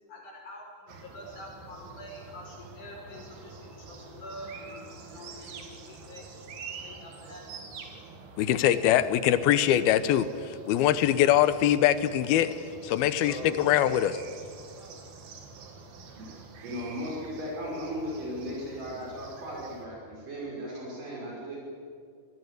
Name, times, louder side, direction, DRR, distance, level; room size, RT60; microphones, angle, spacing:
voice 1, 0.1-6.3 6.8-7.7 14.7-15.0, left 1 dB, 55° left, 0 dB, 6.6 m, -46 dB
sound 1, 0.9-19.9, right 4 dB, 80° right, 4.1 m, -47 dB
voice 2, 8.4-12.5 12.8-14.2, left 11 dB, 80° left, 13 dB, 2.8 m, -23 dB
voice 3, 13.0-13.6 16.2-16.3 16.6-21.6, equal, 60° right, -4 dB, 7.2 m, -37 dB
25.5 x 19.5 x 8.3 m, 2.2 s
omnidirectional pair, 4.3 m